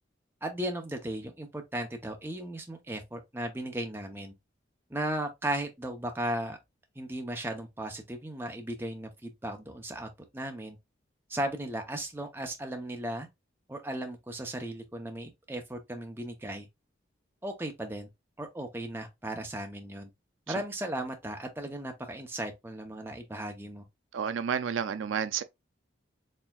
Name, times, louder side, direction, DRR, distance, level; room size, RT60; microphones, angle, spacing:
voice 1, 0.4-4.3 4.9-6.6 7.0-10.8 11.3-13.3 13.7-16.7 17.4-18.1 18.4-20.1 20.5-23.8, right 1 dB, 10° right, 0.6 m, -36 dB
voice 2, 24.1-25.4, right 7 dB, 85° right, 0.4 m, -30 dB
4.3 x 3.4 x 2.3 m
head